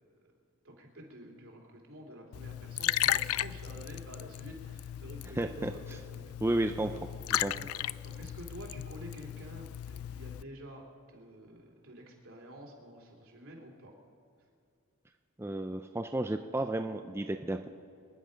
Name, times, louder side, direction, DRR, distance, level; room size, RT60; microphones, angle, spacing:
voice 1, 0.6-6.4 6.9-7.0 7.5-7.7 8.0-10.8 11.1-13.9, right 1 dB, 70° right, 0 dB, 2.9 m, -49 dB
Liquid, 2.3-10.4, left 12 dB, 80° left, 0.3 m, -36 dB
voice 2, 5.4-5.7 6.4-6.9 7.4-7.5 15.4-17.7, right 1 dB, 10° right, 6 dB, 0.4 m, -32 dB
26.5 x 10.5 x 5.1 m, 2.5 s
head